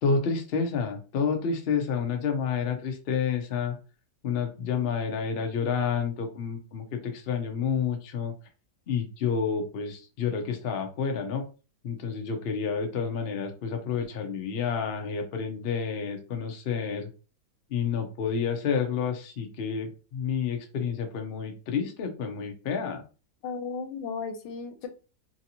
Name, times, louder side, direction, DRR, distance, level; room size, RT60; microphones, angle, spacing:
voice 1, 0.0-3.8 4.2-8.3 8.9-11.4 11.8-17.1 17.7-23.0, left 6 dB, 70° left, 4 dB, 0.5 m, -29 dB
voice 2, 23.4-24.9, left 5 dB, 85° left, 6 dB, 1.3 m, -35 dB
3.1 x 2.7 x 2.8 m, 0.34 s
omnidirectional pair, 2.0 m